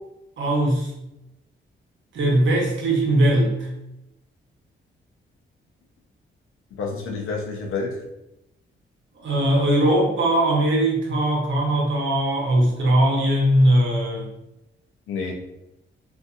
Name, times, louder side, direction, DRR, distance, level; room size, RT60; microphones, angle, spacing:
voice 1, 0.4-0.9 2.1-3.7 9.2-14.3, right 1 dB, 65° right, -2 dB, 0.9 m, -20 dB
voice 2, 6.7-8.0 15.1-15.3, left 4 dB, 80° left, 1 dB, 0.6 m, -29 dB
2.6 x 2.5 x 2.4 m, 0.89 s
cardioid pair, 85°, 21 cm